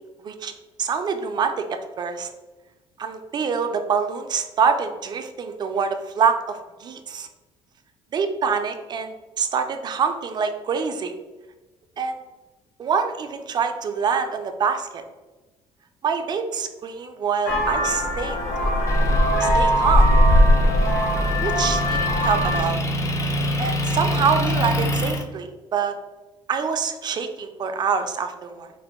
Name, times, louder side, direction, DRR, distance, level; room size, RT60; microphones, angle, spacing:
voice 1, 0.8-2.3 3.0-7.3 8.1-11.1 12.0-12.2 12.8-15.0 16.0-18.7 19.4-20.1 21.4-22.8 23.6-26.0 26.5-28.7, right 6 dB, 35° right, 7 dB, 0.4 m, -25 dB
Vehicle horn car horn honking, 17.5-22.6, equal, 80° left, 0.7 m, -19 dB
Motor vehicle (road) / Engine, 18.9-25.2, equal, 25° left, 0.4 m, -26 dB
3.7 x 2.0 x 3.4 m, 1.2 s
cardioid pair, 120°, 12 cm